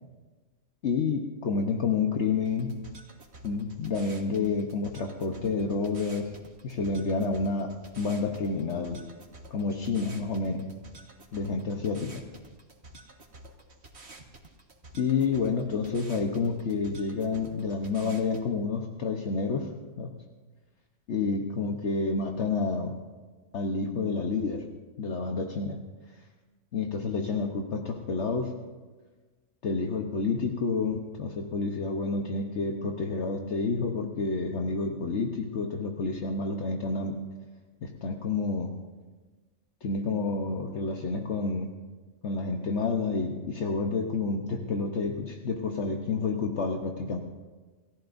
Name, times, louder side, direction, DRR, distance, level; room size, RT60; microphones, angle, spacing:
voice 1, 0.8-2.7 3.4-6.3 6.6-9.0 9.5-10.6 11.3-12.1 15.0-19.7 20.0-20.1 21.1-22.9 23.5-24.6 25.0-25.8 26.7-28.5 29.6-37.2 37.8-38.7 39.8-41.7 42.2-47.2, left 4 dB, 65° left, 3 dB, 1.3 m, -29 dB
sound 1, 2.4-18.4, right 2 dB, 60° right, 1.8 m, -50 dB
29.0 x 14.5 x 2.6 m, 1.3 s
omnidirectional pair, 1.3 m